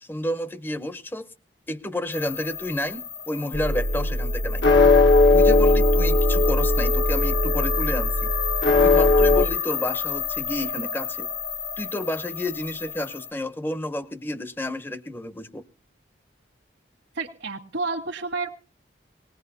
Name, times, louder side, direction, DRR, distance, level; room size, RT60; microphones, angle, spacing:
voice 1, 0.0-1.3 1.7-4.7 5.3-8.3 8.8-11.3 11.8-15.6, left 1 dB, 10° left, 12 dB, 0.7 m, -31 dB
sound 1, 2.1-13.3, left 7 dB, 55° left, 1.1 m, -31 dB
sound 2, 3.5-9.4, left 2 dB, 75° left, 1.5 m, -19 dB
voice 2, 17.1-18.5, right 3 dB, 80° right, 0 dB, 1.5 m, -30 dB
19.5 x 18.5 x 2.7 m, 0.37 s
head